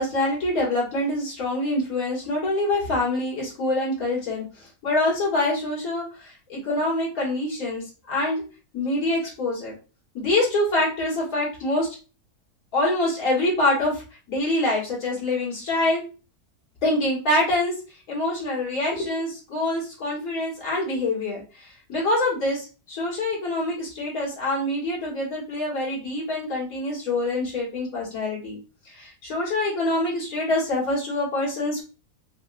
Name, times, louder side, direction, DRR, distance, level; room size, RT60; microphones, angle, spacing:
voice 1, 0.0-8.4 8.7-9.7 10.1-11.9 12.7-14.0 14.3-16.0 16.8-17.7 18.1-28.6 28.9-31.8, left 2 dB, 60° left, -5 dB, 2.1 m, -25 dB
4.3 x 2.7 x 2.4 m, 0.34 s
omnidirectional pair, 1.7 m